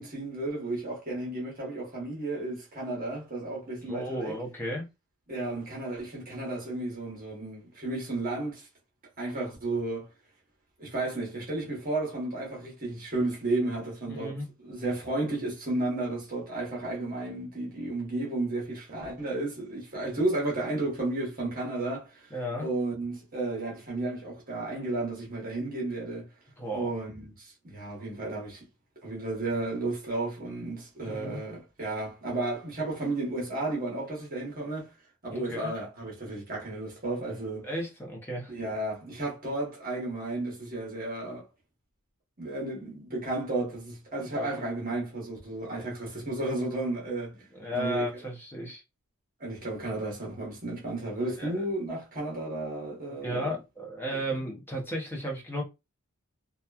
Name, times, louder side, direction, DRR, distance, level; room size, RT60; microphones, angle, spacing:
voice 1, 0.0-4.4 5.3-8.7 9.2-10.1 10.8-26.3 26.7-28.6 29.0-34.9 35.2-37.7 38.5-41.5 42.4-47.4 47.7-48.1 49.4-53.5 54.1-54.2, right 2 dB, 40° right, 1.1 m, -33 dB
voice 2, 3.8-4.9 14.1-14.5 22.3-22.7 26.6-26.9 31.0-31.4 35.3-35.7 37.6-38.5 44.3-44.5 47.5-48.8 51.4-51.6 53.2-55.6, equal, 10° left, 0.7 m, -34 dB
2.9 x 2.3 x 2.3 m
head